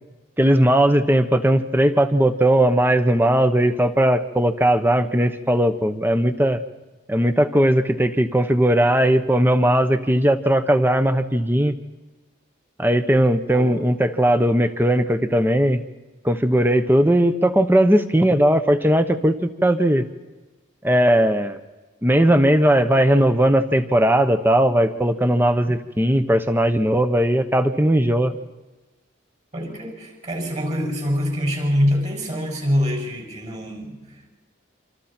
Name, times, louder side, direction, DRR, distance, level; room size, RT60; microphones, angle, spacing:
voice 1, 0.4-6.6 7.1-11.8 12.8-15.8 16.2-20.0 20.8-21.6 22.0-28.3, right 1 dB, 10° right, 9 dB, 1.0 m, -18 dB
voice 2, 13.5-13.8 29.5-34.5, equal, 35° right, 0 dB, 6.6 m, -25 dB
28.0 x 26.5 x 4.5 m, 1.2 s
head